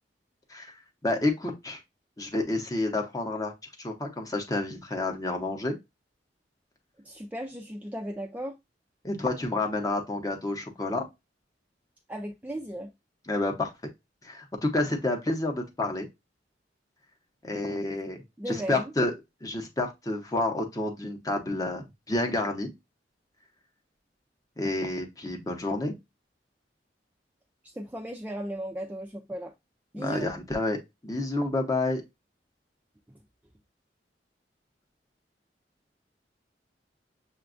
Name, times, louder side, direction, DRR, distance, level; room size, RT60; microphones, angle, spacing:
voice 1, 1.0-1.8 2.2-3.5 3.8-5.7 9.0-11.0 13.3-13.7 14.2-16.1 17.4-18.2 18.5-19.1 19.4-22.7 24.6-25.9 29.9-32.0, left 2 dB, 20° left, 0.7 m, -29 dB
voice 2, 7.0-8.5 12.1-12.9 18.4-18.9 27.7-29.5 29.9-30.3, right 1 dB, 10° right, 0.3 m, -36 dB
6.8 x 2.3 x 2.4 m
head